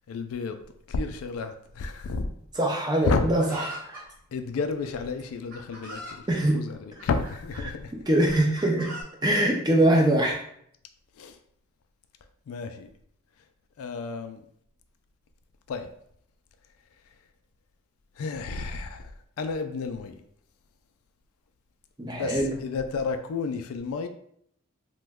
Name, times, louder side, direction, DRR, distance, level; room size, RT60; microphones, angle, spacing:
voice 1, 0.1-0.6 0.9-2.3 3.0-3.3 4.3-6.2 6.5-7.9 11.2-11.4 12.5-12.9 13.8-14.4 15.7-15.9 18.2-19.1 19.4-20.2 22.1-24.1, left 4 dB, 70° left, 7 dB, 0.3 m, -31 dB
voice 2, 2.5-4.1 6.3-6.6 7.6-7.7 8.1-8.9 9.2-10.4 22.0-22.6, right 1 dB, 20° right, 0 dB, 0.5 m, -23 dB
Chicken rooster, 3.4-4.1 5.0-5.1 5.5-6.2 7.0-7.6 8.3-9.0, right 1 dB, 40° right, 0.8 m, -40 dB
3.0 x 2.2 x 3.4 m, 0.68 s
head